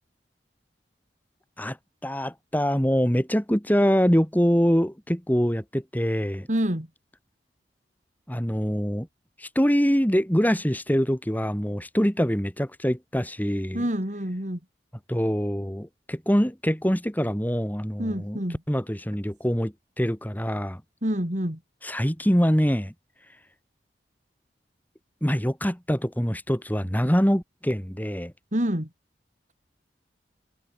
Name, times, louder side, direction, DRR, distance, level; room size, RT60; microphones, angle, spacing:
voice 1, 2.0-6.5 8.3-9.1 9.4-13.8 15.1-18.4 18.7-20.8 21.8-22.9 25.2-28.3, equal, 10° left, 4.9 m, -24 dB
voice 2, 6.5-6.9 13.7-14.6 18.0-18.6 21.0-21.6 28.5-28.9, equal, 45° right, 4.9 m, -27 dB
head